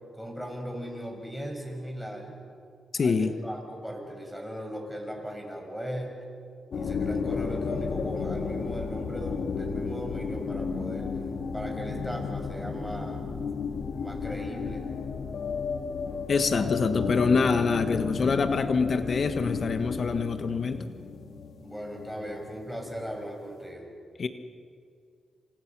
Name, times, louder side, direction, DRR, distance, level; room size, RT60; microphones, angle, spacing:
voice 1, 0.1-2.3 3.0-6.1 6.7-11.2 11.5-13.2 14.0-14.8 21.6-23.9, equal, ahead, 2 dB, 6.3 m, -38 dB
voice 2, 2.9-3.4 16.3-20.8 24.2-24.3, left 4 dB, 55° left, 9 dB, 1.4 m, -25 dB
sound 1, 6.7-23.1, left 5 dB, 70° left, 2.1 m, -33 dB
27.5 x 27.0 x 6.1 m, 2.3 s
cardioid pair, 85°, 0 cm